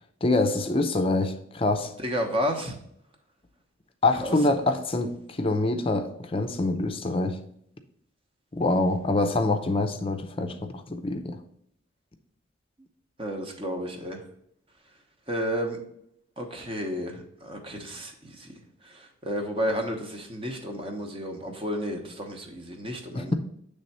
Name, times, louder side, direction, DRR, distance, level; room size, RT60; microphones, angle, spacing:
voice 1, 0.2-1.9 4.0-7.4 8.5-11.4 23.1-23.3, left 2 dB, 30° left, 0.5 m, -25 dB
voice 2, 2.0-2.7 4.2-4.3 13.2-14.2 15.3-15.8 16.4-18.1 18.4-18.5 18.9-23.3, equal, 30° right, 1.0 m, -31 dB
7.9 x 3.4 x 4.2 m
head